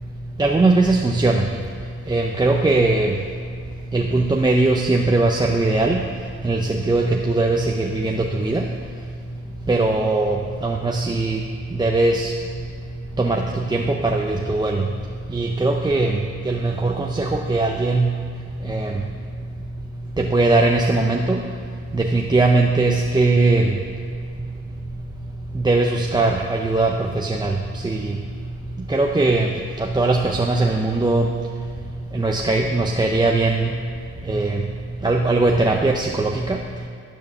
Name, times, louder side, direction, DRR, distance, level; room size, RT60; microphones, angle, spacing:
voice 1, 0.4-1.4 2.1-3.1 3.9-6.0 6.4-6.6 6.9-8.6 9.7-10.4 10.6-11.4 11.8-12.3 13.2-13.4 13.7-14.8 15.3-16.1 16.5-18.1 18.7-18.9 20.2-21.4 21.9-23.6 25.6-27.5 27.8-28.1 28.9-29.5 29.9-31.3 32.1-33.7 34.3-34.6 35.0-36.3, right 2 dB, 15° right, 0 dB, 0.7 m, -19 dB
12.0 x 4.6 x 6.9 m, 2.4 s
cardioid pair, 90°, 30 cm